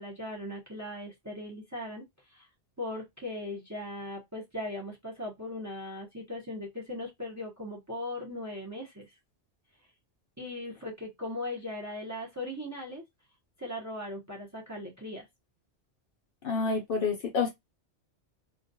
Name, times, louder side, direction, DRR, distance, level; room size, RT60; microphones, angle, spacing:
voice 1, 0.0-2.1 2.3-2.5 2.8-9.1 10.4-13.0 13.6-15.3, left 1 dB, 20° right, 0.6 m, -38 dB
voice 2, 16.4-17.5, left 5 dB, 60° left, 0.7 m, -28 dB
2.3 x 2.1 x 2.6 m
omnidirectional pair, 1.2 m